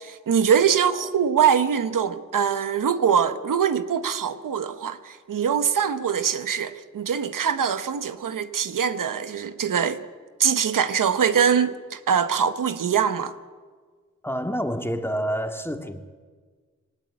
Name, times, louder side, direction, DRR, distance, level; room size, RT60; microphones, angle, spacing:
voice 1, 0.0-10.0 10.4-13.3, right 7 dB, 85° right, 1.0 m, -23 dB
voice 2, 14.2-16.1, equal, 5° left, 2.3 m, -28 dB
19.5 x 18.5 x 8.5 m
cardioid pair, 45°, 31 cm